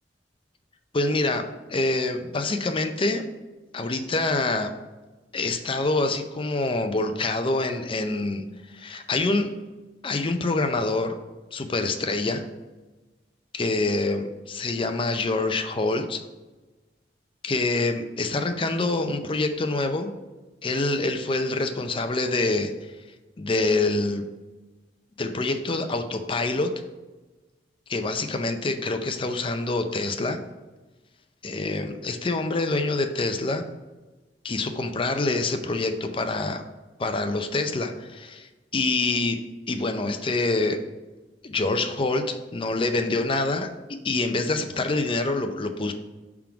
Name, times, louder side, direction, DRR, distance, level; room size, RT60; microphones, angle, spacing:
voice 1, 0.9-3.2 3.7-4.7 5.3-8.4 8.7-9.5 10.0-11.1 11.5-12.4 13.5-16.2 17.4-20.1 20.6-22.7 23.4-24.3 25.2-26.7 27.9-30.4 31.4-33.7 34.4-36.7 37.0-39.4 39.7-40.8 41.4-43.7 44.0-45.9, left 2 dB, 30° left, 7 dB, 0.5 m, -26 dB
5.9 x 3.7 x 4.9 m, 1.2 s
head